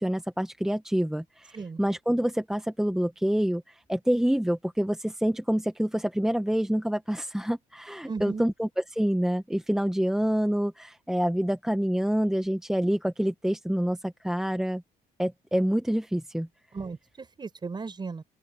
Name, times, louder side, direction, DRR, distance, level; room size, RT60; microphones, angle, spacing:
voice 1, 0.0-14.8 15.2-16.5, equal, 5° right, 1.3 m, -27 dB
voice 2, 8.1-8.5 16.7-18.2, right 4 dB, 25° right, 5.0 m, -36 dB
open air
cardioid pair, 110°, 17 cm